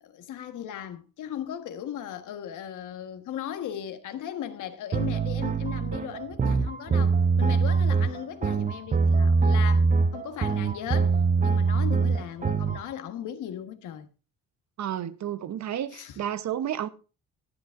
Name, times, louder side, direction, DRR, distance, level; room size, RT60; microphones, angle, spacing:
voice 1, 0.0-14.1 15.9-16.2, left 10 dB, 80° left, 1.5 m, -37 dB
sound 1, 4.9-12.8, right 4 dB, 25° right, 0.6 m, -23 dB
voice 2, 14.8-16.9, right 10 dB, 65° right, 1.0 m, -31 dB
20.0 x 7.7 x 2.6 m
cardioid pair, 90°, 30 cm